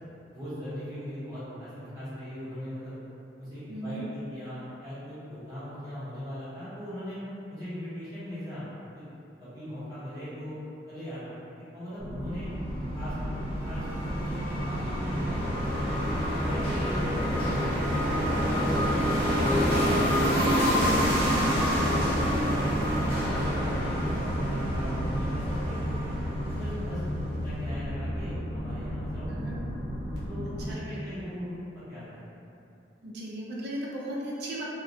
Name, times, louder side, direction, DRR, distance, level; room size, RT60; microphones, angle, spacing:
voice 1, 0.3-2.9 3.4-7.2 7.5-8.7 8.9-9.0 9.4-10.5 10.9-11.4 11.7-12.5 12.9-16.9 17.3-20.9 21.6-26.1 26.6-29.3 30.3-32.0, equal, 20° right, -16 dB, 0.9 m, -39 dB
voice 2, 3.7-4.0 20.7-21.0 29.3-29.5 30.7-31.0 33.0-34.6, right 1 dB, 60° right, -5 dB, 0.5 m, -36 dB
sound 1, 12.0-30.7, equal, 60° left, 0.6 m, -32 dB
sound 2, 12.8-27.2, equal, 30° left, 0.8 m, -28 dB
2.3 x 2.1 x 2.6 m, 2.7 s
head